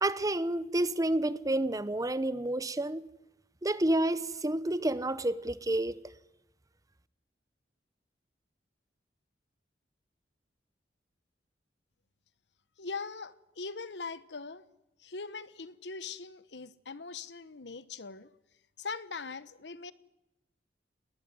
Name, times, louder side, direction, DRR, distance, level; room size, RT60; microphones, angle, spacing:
voice 1, 0.0-3.1 3.6-6.0, right 1 dB, 20° right, 0.8 m, -29 dB
voice 2, 12.8-14.6 15.0-18.3 18.8-19.9, left 4 dB, 70° left, 1.1 m, -41 dB
20.5 x 20.0 x 9.6 m
head